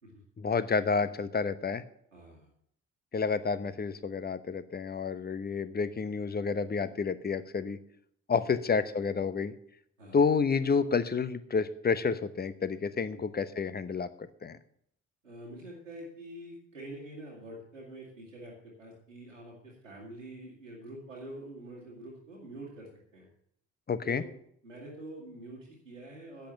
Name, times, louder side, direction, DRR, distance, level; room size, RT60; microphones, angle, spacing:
voice 1, 0.4-1.8 3.1-7.8 8.3-9.5 10.1-14.6 23.9-24.2, left 5 dB, 25° left, 14 dB, 1.0 m, -29 dB
voice 2, 2.1-2.5 5.1-5.2 8.4-8.6 10.0-10.2 13.1-13.2 15.2-23.3 24.0-24.3 24.6-26.5, right 1 dB, 90° right, -4 dB, 2.0 m, -46 dB
10.5 x 8.0 x 8.2 m, 0.69 s
figure-of-eight pair, 40°, 37 cm